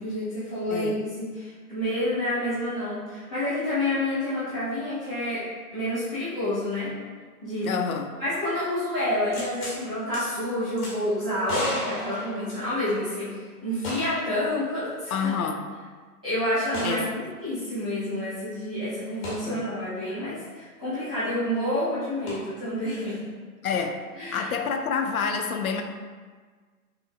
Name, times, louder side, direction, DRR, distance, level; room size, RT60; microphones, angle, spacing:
voice 1, 0.0-5.4 5.7-6.9 7.4-7.8 8.2-15.3 16.2-23.2 24.1-24.5, left 1 dB, 5° right, -18 dB, 0.4 m, -29 dB
voice 2, 7.6-8.1 15.1-15.6 16.8-17.0 19.4-19.7 23.6-24.0 24.3-25.8, left 6 dB, 65° left, 5 dB, 0.6 m, -27 dB
sound 1, 9.3-9.8 10.1-10.2 10.8-10.9 11.5-13.0 13.8-14.3 14.6-14.7 16.7-17.0 19.2-19.4 22.3-22.4, left 1 dB, 25° left, 1.3 m, -34 dB
5.8 x 2.6 x 2.4 m, 1.5 s
hypercardioid pair, 135°, 46 cm